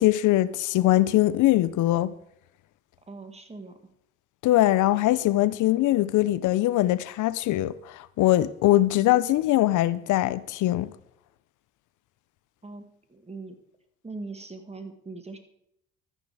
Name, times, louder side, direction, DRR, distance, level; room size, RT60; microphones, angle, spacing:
voice 1, 0.0-2.1 4.4-10.9, left 15 dB, 85° left, 0.6 m, -22 dB
voice 2, 3.1-3.8 12.6-13.6 14.0-15.4, right 3 dB, 20° right, 1.9 m, -41 dB
13.0 x 9.6 x 4.8 m
cardioid pair, 90°, 30 cm